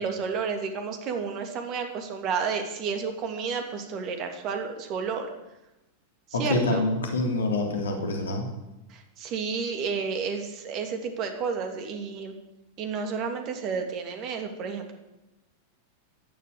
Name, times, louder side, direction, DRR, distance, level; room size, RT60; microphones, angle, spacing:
voice 1, 0.0-5.3 6.3-6.9 8.9-12.3 12.8-14.9, right 5 dB, 40° right, 5 dB, 3.0 m, -31 dB
voice 2, 6.3-8.4, left 2 dB, 65° left, 2 dB, 3.3 m, -26 dB
16.5 x 11.0 x 7.0 m, 0.97 s
figure-of-eight pair, 90°, 0 cm